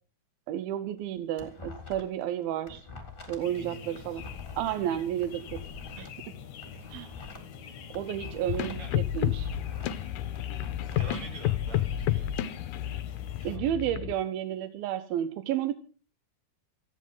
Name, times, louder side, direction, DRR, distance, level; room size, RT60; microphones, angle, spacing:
voice 1, 0.5-2.9 3.3-4.3 4.6-5.6 6.0-6.1 6.9-7.1 7.9-9.5 13.4-15.8, right 11 dB, 75° right, 10 dB, 2.4 m, -31 dB
sound 1, 1.0-2.2 2.5-6.1 6.5-8.9 9.1-11.2, left 4 dB, 15° left, 3.0 m, -45 dB
sound 2, 3.4-13.6, left 7 dB, 55° left, 2.3 m, -46 dB
voice 2, 3.5-4.2 6.7-7.0 8.8-8.9 10.9-12.6 13.4-13.7, right 1 dB, 40° right, 2 dB, 7.8 m, -45 dB
sound 3, 8.5-14.1, left 12 dB, 75° left, 2.0 m, -31 dB
28.5 x 10.5 x 3.8 m, 0.38 s
omnidirectional pair, 4.9 m